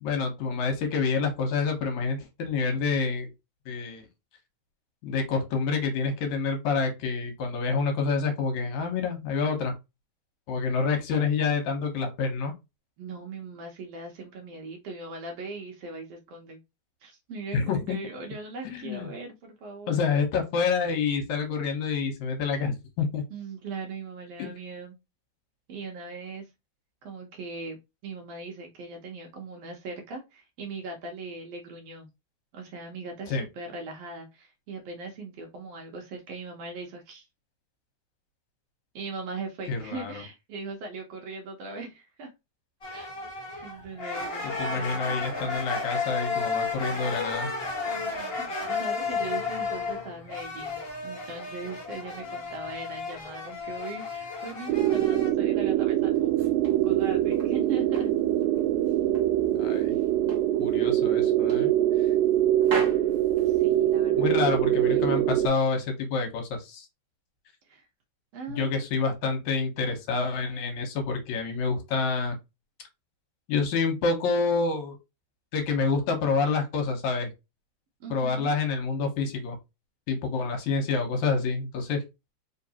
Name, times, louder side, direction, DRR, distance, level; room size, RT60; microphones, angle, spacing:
voice 1, 0.0-3.3 3.7-4.1 5.0-9.7 10.5-12.5 17.5-18.0 18.6-19.1 19.9-23.2 24.4-24.5 33.3-33.4 39.7-40.2 44.4-47.5 59.6-60.0 60.6-61.7 64.2-66.9 68.5-72.4 73.5-75.0 75.5-77.3 78.1-79.6 80.1-82.0, left 4 dB, 75° left, 5 dB, 2.3 m, -28 dB
voice 2, 13.0-16.6 17.0-20.0 23.3-25.0 25.7-26.5 27.0-27.8 28.0-32.1 32.5-37.3 39.0-42.3 42.9-43.1 43.6-45.0 47.9-56.3 56.7-58.1 63.4-64.3 64.7-65.1 67.7-67.9 68.3-68.8 78.0-78.5, right 3 dB, 65° right, 2 dB, 1.7 m, -39 dB
sound 1, 42.8-55.3, left 4 dB, 40° left, 0.8 m, -33 dB
sound 2, 54.7-65.5, right 13 dB, 85° right, 2.0 m, -24 dB
sound 3, 56.1-57.6 57.9-59.3 59.7-60.5 60.9-61.1 61.5-62.3 62.6-64.1, right 3 dB, 40° right, 1.9 m, -38 dB
4.6 x 3.2 x 2.8 m, 0.23 s
omnidirectional pair, 3.3 m